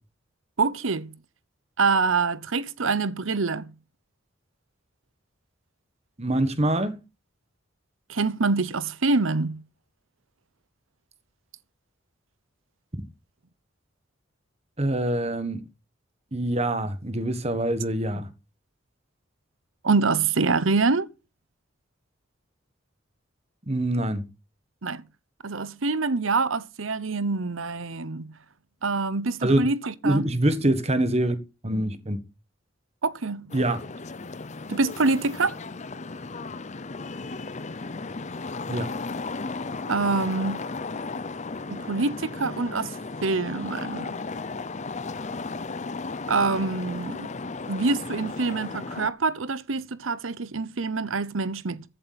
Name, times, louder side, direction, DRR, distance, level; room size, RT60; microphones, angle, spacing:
voice 1, 0.6-1.1 1.8-3.7 8.1-9.6 19.8-21.1 24.8-25.0 25.4-28.3 28.8-30.3 33.0-33.5 34.7-35.5 39.9-40.6 41.7-42.9 43.2-44.1 46.3-47.3 47.7-51.8, right 4 dB, 80° right, 0.9 m, -25 dB
voice 2, 6.2-7.0 14.8-15.6 16.3-18.3 23.7-24.3 29.4-29.6 30.0-31.4 31.6-32.2 33.5-33.8 38.7-38.9, right 1 dB, 35° right, 1.5 m, -24 dB
sound 1, 33.5-49.1, left 3 dB, 35° left, 0.7 m, -35 dB
15.0 x 7.9 x 4.2 m
head